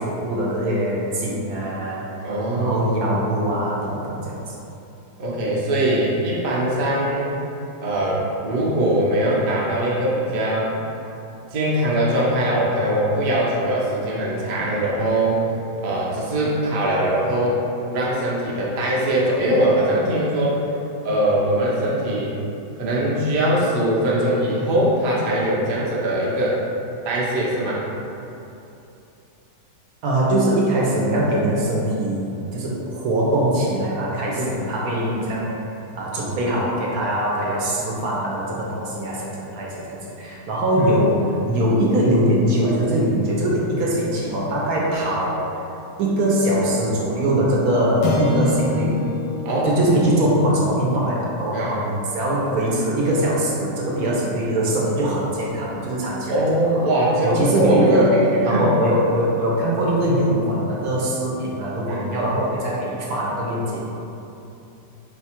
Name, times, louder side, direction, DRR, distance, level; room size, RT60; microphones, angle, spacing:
voice 1, 0.0-2.1 2.6-4.5 30.0-35.5 35.9-45.4 46.0-49.0 49.6-56.4 57.2-63.8, right 1 dB, 65° right, -4 dB, 1.0 m, -22 dB
voice 2, 2.2-2.8 5.2-7.3 7.8-10.7 11.5-15.4 15.8-17.6 17.9-20.6 21.0-22.4 22.8-26.6 27.0-27.8 34.3-34.6 40.8-40.9 43.8-43.9 49.4-49.8 51.5-51.8 56.3-58.7 61.9-62.1, right 1 dB, 50° right, -6 dB, 0.6 m, -21 dB
sound 1, 48.0-52.5, left 2 dB, 85° left, 1.3 m, -28 dB
4.7 x 2.3 x 4.3 m, 2.9 s
omnidirectional pair, 1.8 m